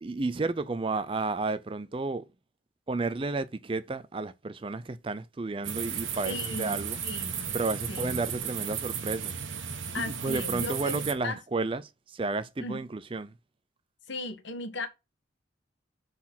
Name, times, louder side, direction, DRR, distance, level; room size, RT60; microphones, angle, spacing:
voice 1, 0.0-2.3 2.9-7.0 7.5-9.4 9.9-13.3, right 3 dB, 25° right, 0.4 m, -32 dB
sound 1, 5.6-11.1, right 7 dB, 85° right, 1.2 m, -34 dB
voice 2, 6.2-6.8 7.0-7.5 7.9-8.2 9.9-11.4 12.6-12.8 14.1-14.9, left 2 dB, 70° left, 1.3 m, -36 dB
6.2 x 4.1 x 5.9 m
head